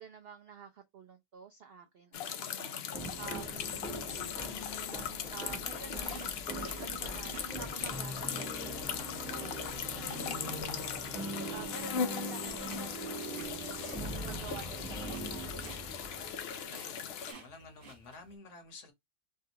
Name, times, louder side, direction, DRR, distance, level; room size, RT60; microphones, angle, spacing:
voice 1, 0.0-11.1 11.5-16.3, right 6 dB, 70° right, 0.5 m, -50 dB
sound 1, 2.1-17.3, left 7 dB, 80° left, 0.5 m, -39 dB
sound 2, 2.9-16.6, right 1 dB, ahead, 0.7 m, -42 dB
sound 3, 5.6-18.3, right 5 dB, 50° right, 1.4 m, -54 dB
voice 2, 16.7-18.9, left 3 dB, 55° left, 1.2 m, -51 dB
3.4 x 2.3 x 2.8 m
omnidirectional pair, 1.6 m